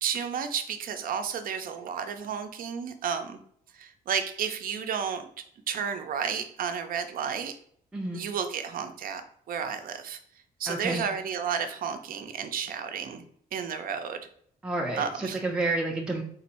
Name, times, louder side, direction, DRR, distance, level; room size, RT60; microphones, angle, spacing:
voice 1, 0.0-3.4 3.7-5.3 5.7-7.6 8.1-9.2 9.5-10.2 10.6-13.2 13.5-14.3 15.0-15.4, right 7 dB, 65° right, 8 dB, 0.5 m, -32 dB
voice 2, 7.9-8.3 10.7-11.1 14.6-16.2, right 2 dB, 5° right, 0 dB, 0.4 m, -30 dB
3.7 x 2.6 x 4.2 m, 0.65 s
cardioid pair, 130°, 16 cm